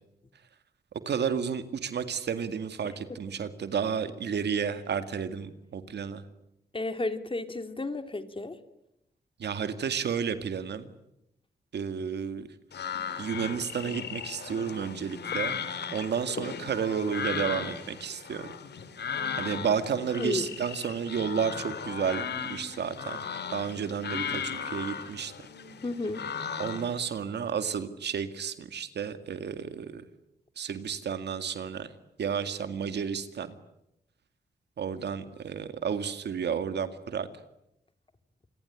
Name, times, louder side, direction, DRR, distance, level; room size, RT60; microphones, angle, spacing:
voice 1, 1.1-6.2 9.4-10.9 11.7-12.5 13.2-15.6 15.9-18.5 19.4-23.2 23.5-25.3 26.6-30.0 30.6-31.9 32.2-33.5 34.8-37.3, right 7 dB, 85° right, 10 dB, 2.0 m, -31 dB
voice 2, 2.8-3.2 6.7-8.6 20.2-20.6 25.8-26.2, left 2 dB, 30° left, 9 dB, 2.7 m, -33 dB
sound 1, 12.7-27.0, left 7 dB, 80° left, 2.4 m, -36 dB
27.5 x 21.5 x 9.9 m, 0.83 s
cardioid pair, 70°, 17 cm